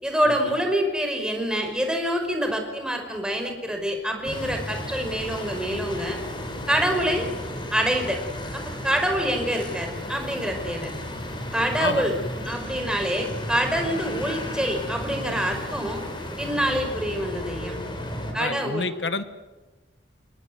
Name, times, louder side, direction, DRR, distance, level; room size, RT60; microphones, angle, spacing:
voice 1, 0.0-6.2 6.7-7.3 7.7-8.2 8.8-10.9 11.5-12.2 12.5-16.0 16.4-17.8 18.3-18.9, equal, 5° right, 4 dB, 5.3 m, -26 dB
sound 1, 4.2-18.3, left 1 dB, 30° left, 5.0 m, -34 dB
voice 2, 11.8-12.6 18.3-19.2, left 3 dB, 75° left, 11 dB, 1.4 m, -30 dB
28.5 x 21.0 x 9.5 m, 1.2 s
head